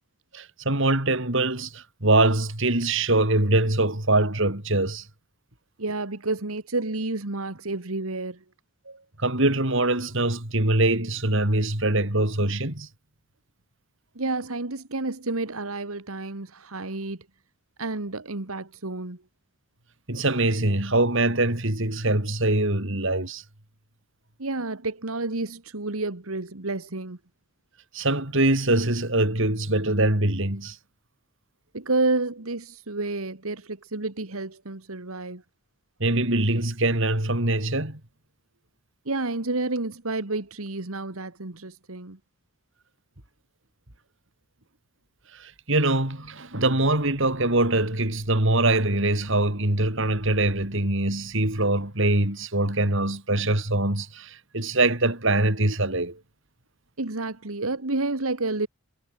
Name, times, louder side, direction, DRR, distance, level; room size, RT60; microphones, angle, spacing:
voice 1, 0.3-5.0 8.9-12.9 20.1-23.4 27.9-30.8 36.0-38.0 45.3-56.2, right 2 dB, 60° right, 4.2 m, -23 dB
voice 2, 5.8-8.4 14.2-17.3 17.8-19.2 24.4-27.2 31.7-35.4 39.1-42.2 57.0-58.7, right 2 dB, 80° right, 1.9 m, -30 dB
head